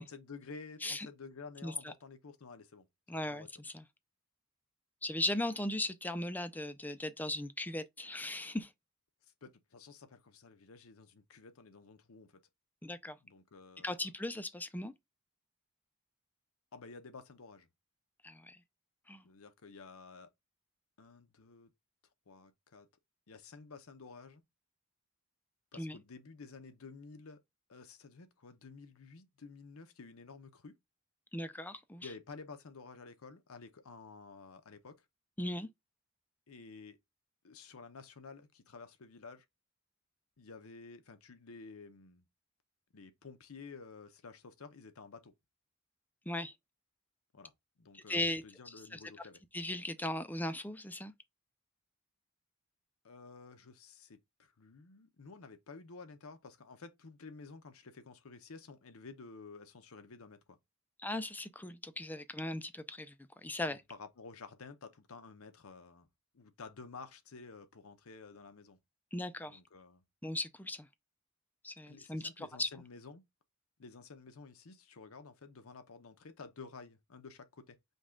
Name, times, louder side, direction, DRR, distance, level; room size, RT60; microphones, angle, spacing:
voice 1, 0.0-3.5 9.4-12.4 13.2-14.1 16.7-17.7 19.2-20.3 21.0-21.7 22.3-22.9 23.3-24.4 25.7-27.4 27.7-30.8 32.0-35.0 36.5-37.0 37.4-39.4 40.4-42.3 42.9-45.3 47.3-47.5 47.8-49.4 53.0-60.6 63.7-66.1 66.3-68.8 69.4-70.0 71.9-73.2 73.8-77.8, left 4 dB, 80° left, 0.8 m, -52 dB
voice 2, 3.1-3.8 5.0-8.7 12.8-13.2 13.8-14.9 18.2-18.6 19.1-19.2 25.8-26.0 31.3-32.1 35.4-35.7 46.3-46.5 47.9-48.4 48.9-49.0 49.5-51.1 61.0-63.1 63.4-63.8 69.1-69.6 70.2-70.9 71.6-72.7, left 1 dB, 10° left, 0.4 m, -38 dB
5.3 x 2.4 x 3.7 m
head